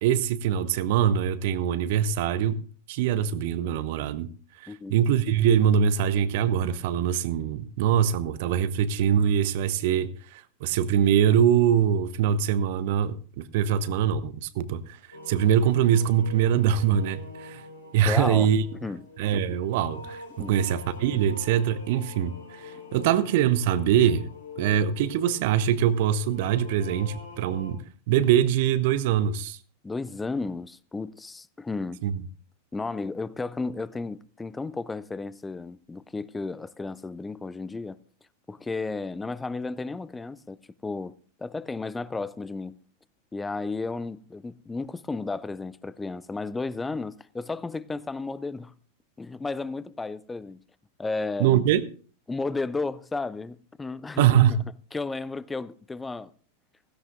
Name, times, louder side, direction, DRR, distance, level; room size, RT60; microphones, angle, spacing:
voice 1, 0.0-2.6 2.9-4.3 4.6-15.0 15.3-17.6 17.9-18.6 19.2-24.3 24.6-29.6 32.0-32.1 51.4-51.8 54.2-54.6, right 9 dB, 50° right, 0.8 m, -23 dB
voice 2, 4.7-5.0 18.0-18.5 18.8-19.1 20.4-20.6 23.0-23.1 29.8-32.0 32.7-38.0 38.5-42.8 43.3-48.7 49.2-50.6 51.0-51.6 52.3-54.3 54.9-56.3, left 3 dB, 10° left, 0.5 m, -33 dB
sound 1, 15.1-27.7, left 3 dB, 75° left, 3.9 m, -45 dB
16.5 x 16.0 x 2.4 m
figure-of-eight pair, 90°, 0 cm